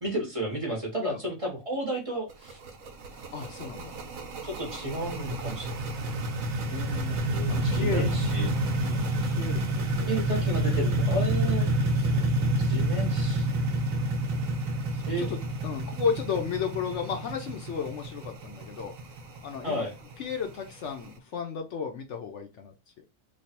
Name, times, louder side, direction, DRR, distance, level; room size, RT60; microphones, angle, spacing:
voice 1, 0.0-2.6 4.4-5.7 7.3-8.5 10.0-11.7 12.6-13.5 15.1-15.3 19.6-20.0, right 1 dB, 25° right, -2 dB, 1.0 m, -32 dB
sound 1, 2.3-21.1, right 1 dB, 80° right, 1.2 m, -29 dB
voice 2, 3.3-4.0 6.7-8.0 8.8-10.1 12.0-12.2 14.9-15.4 15.6-18.9 19.4-19.8 20.2-22.7, left 6 dB, 65° left, 4 dB, 0.9 m, -34 dB
3.2 x 2.4 x 4.2 m, 0.27 s
omnidirectional pair, 1.4 m